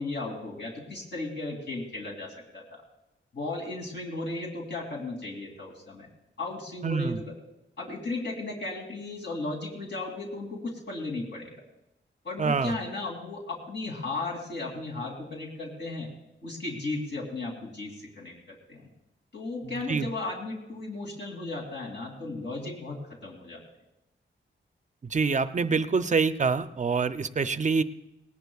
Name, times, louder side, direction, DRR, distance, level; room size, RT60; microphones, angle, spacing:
voice 1, 0.0-2.8 3.3-6.1 6.4-7.3 7.8-11.6 12.2-16.1 16.4-18.9 19.3-23.6, left 2 dB, 60° left, -2 dB, 2.8 m, -35 dB
voice 2, 6.8-7.2 12.4-12.7 19.9-20.1 25.1-27.8, right 5 dB, 35° right, 11 dB, 0.6 m, -25 dB
19.5 x 18.5 x 2.4 m, 0.91 s
wide cardioid pair, 130°, 20 cm